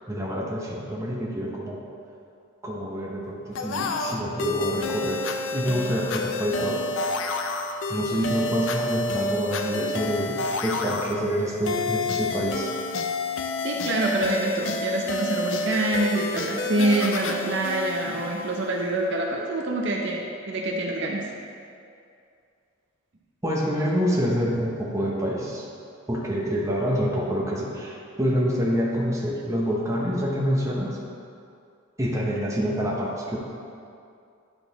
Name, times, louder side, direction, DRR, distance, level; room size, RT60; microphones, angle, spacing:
voice 1, 0.1-1.8 2.6-6.8 7.9-12.7 23.4-25.6 26.1-31.0 32.0-33.4, equal, 15° right, -4 dB, 0.9 m, -27 dB
sound 1, 3.6-19.0, left 2 dB, 65° left, 0.4 m, -29 dB
voice 2, 13.6-21.2, right 1 dB, 55° right, 0 dB, 0.6 m, -26 dB
9.7 x 3.9 x 4.0 m, 2.4 s
head